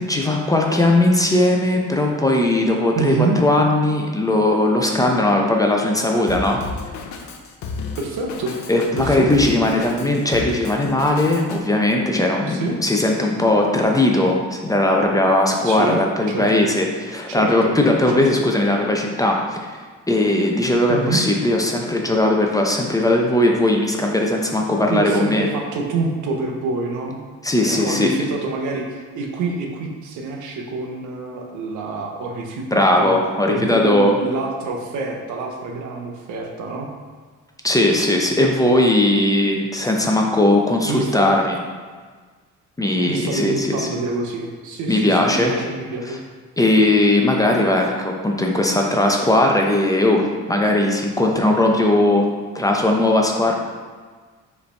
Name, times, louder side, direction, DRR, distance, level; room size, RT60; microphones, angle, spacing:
voice 1, 0.0-6.6 8.7-16.9 17.1-19.6 20.1-25.5 27.4-28.1 32.7-34.2 37.6-41.6 42.8-43.9 44.9-45.5 46.1-46.2 46.6-52.3 52.5-53.5, left 1 dB, 10° left, 1 dB, 0.5 m, -18 dB
voice 2, 2.9-3.4 8.0-8.6 9.0-9.5 12.4-12.8 15.6-16.0 16.3-16.7 17.4-17.7 18.1-18.3 20.9-21.2 24.9-27.2 27.6-33.2 33.5-36.9 40.9-41.4 43.0-46.2, right 3 dB, 80° right, 1 dB, 0.8 m, -27 dB
Drum kit, 6.3-11.6, left 4 dB, 70° left, 0.6 m, -32 dB
4.8 x 3.3 x 3.3 m, 1.5 s
cardioid pair, 90°, 30 cm